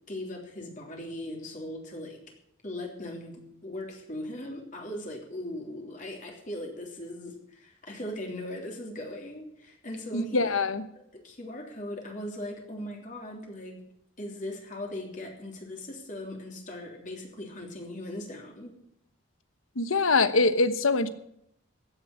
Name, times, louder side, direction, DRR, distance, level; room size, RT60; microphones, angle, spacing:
voice 1, 0.1-2.2 2.6-10.5 10.9-13.8 14.2-18.7, left 1 dB, 40° left, 0 dB, 3.2 m, -39 dB
voice 2, 10.1-10.8 19.8-21.1, left 3 dB, 85° left, 12 dB, 1.1 m, -24 dB
16.0 x 7.2 x 8.8 m, 0.74 s
head